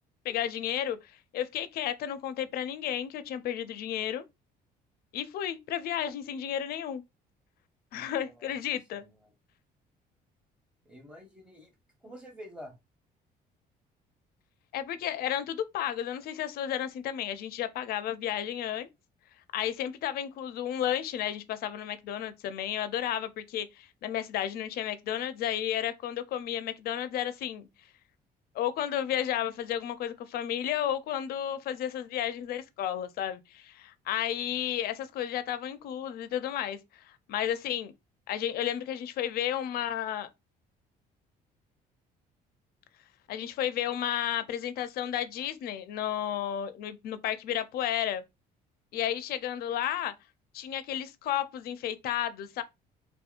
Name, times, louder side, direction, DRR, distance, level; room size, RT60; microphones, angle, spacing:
voice 1, 0.2-4.2 5.1-7.0 7.9-9.0 14.7-18.9 19.5-27.7 28.5-37.9 38.3-40.3 43.3-48.2 48.9-50.1 50.5-52.6, left 10 dB, 65° left, 0.4 m, -32 dB
voice 2, 7.9-8.5 8.9-9.3 10.8-11.7 12.0-12.7, equal, 5° right, 0.9 m, -48 dB
2.7 x 2.1 x 2.4 m
cardioid pair, 110°, 17 cm